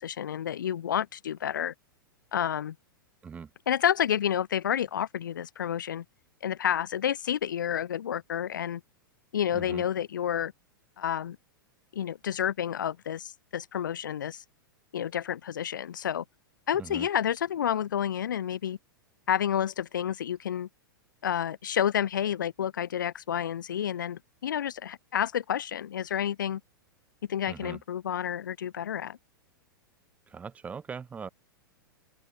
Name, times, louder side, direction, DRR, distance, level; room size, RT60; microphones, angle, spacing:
voice 1, 0.0-1.7 2.3-2.7 3.7-6.0 6.4-8.8 9.3-10.5 11.0-11.4 11.9-14.4 14.9-16.2 16.7-18.8 19.3-20.7 21.2-26.6 27.3-29.2, left 9 dB, 60° left, 1.5 m, -30 dB
voice 2, 9.5-9.8 16.8-17.1 27.5-27.8 30.3-31.3, right 6 dB, 10° right, 0.5 m, -40 dB
open air
figure-of-eight pair, 95°, 12 cm